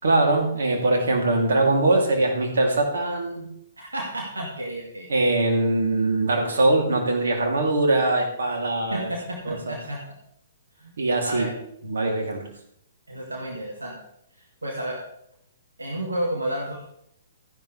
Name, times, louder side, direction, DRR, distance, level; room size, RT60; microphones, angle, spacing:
voice 1, 0.0-3.5 5.1-9.1 9.4-9.7 11.0-11.5 11.8-12.5, right 2 dB, 70° right, 1 dB, 3.0 m, -22 dB
voice 2, 3.8-5.1 8.9-10.0 10.8-11.5 13.1-14.0 14.6-15.0 15.8-16.9, right 1 dB, 85° right, -2 dB, 2.3 m, -31 dB
14.0 x 10.5 x 3.4 m, 0.72 s
figure-of-eight pair, 125°, 0 cm